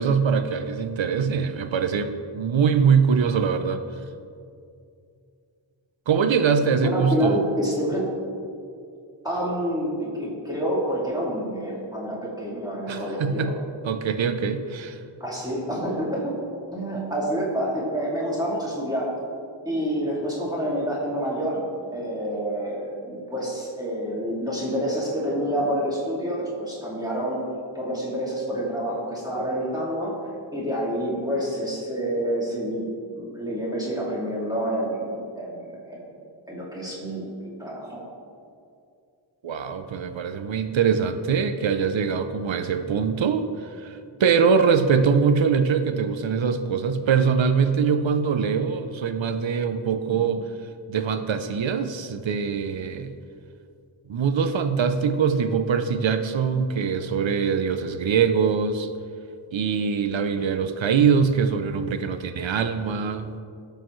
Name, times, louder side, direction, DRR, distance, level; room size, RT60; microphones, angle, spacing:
voice 1, 0.0-3.8 6.1-7.4 12.9-13.5 13.8-15.0 39.4-50.4 50.9-53.1 54.1-58.9 59.5-63.4, right 6 dB, 75° right, 8 dB, 0.7 m, -23 dB
voice 2, 6.8-8.1 9.2-13.5 15.2-16.4 16.7-19.1 19.6-27.4 27.7-30.2 30.5-36.0 36.5-38.0 50.1-50.2, equal, 10° right, -6 dB, 2.4 m, -28 dB
18.5 x 6.7 x 3.2 m, 2.4 s
wide cardioid pair, 80°, 46 cm